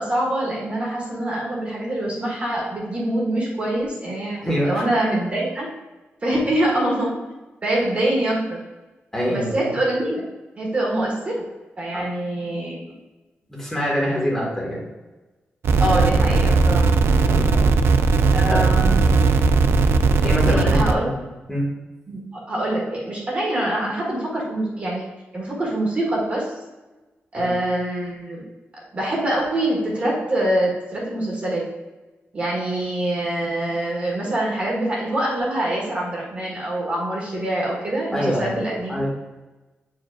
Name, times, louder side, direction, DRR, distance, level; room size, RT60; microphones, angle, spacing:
voice 1, 0.0-5.7 6.2-7.1 7.6-8.6 9.3-10.2 10.6-11.4 11.8-12.8 15.8-16.9 18.3-19.0 20.4-21.1 22.1-26.5 27.3-28.4 28.7-31.7 32.3-39.0, right 1 dB, 30° right, -3 dB, 1.6 m, -24 dB
voice 2, 4.4-4.8 9.1-9.5 11.9-12.0 13.5-14.8 17.2-17.7 18.5-18.6 20.2-21.1 21.5-21.6 27.4-27.5 38.1-38.6 38.9-39.1, equal, 10° left, -5 dB, 1.7 m, -24 dB
sound 1, 15.6-20.9, right 4 dB, 75° right, 0.4 m, -17 dB
8.3 x 4.9 x 2.5 m, 1.1 s
wide cardioid pair, 150°, 4 cm